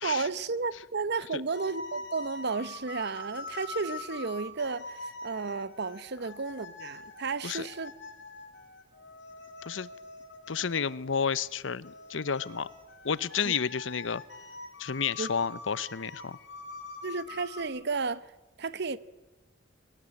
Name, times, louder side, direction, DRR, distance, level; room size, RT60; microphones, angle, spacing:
voice 1, 0.0-7.9 13.4-13.5 15.2-15.3 17.0-18.3 18.6-19.0, right 4 dB, 60° right, 0.9 m, -33 dB
sound 1, 1.5-11.1 11.8-17.6, left 3 dB, 70° left, 4.8 m, -44 dB
voice 2, 10.5-12.7 13.0-14.2 14.8-16.4, left 6 dB, 85° left, 0.8 m, -31 dB
23.0 x 19.5 x 9.9 m
head